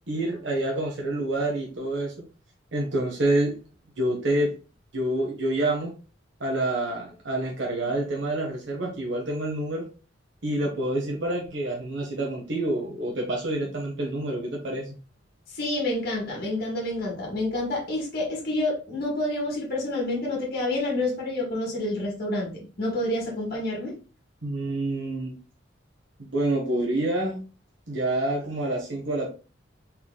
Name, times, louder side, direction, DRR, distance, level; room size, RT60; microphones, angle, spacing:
voice 1, 0.1-2.1 2.7-3.5 4.0-4.5 4.9-5.9 6.4-9.8 10.4-15.0 24.4-25.4 26.2-27.4 27.9-29.3, right 1 dB, 70° right, 1.2 m, -27 dB
voice 2, 15.5-23.9, left 1 dB, 50° left, 1.7 m, -28 dB
4.4 x 3.9 x 2.2 m
head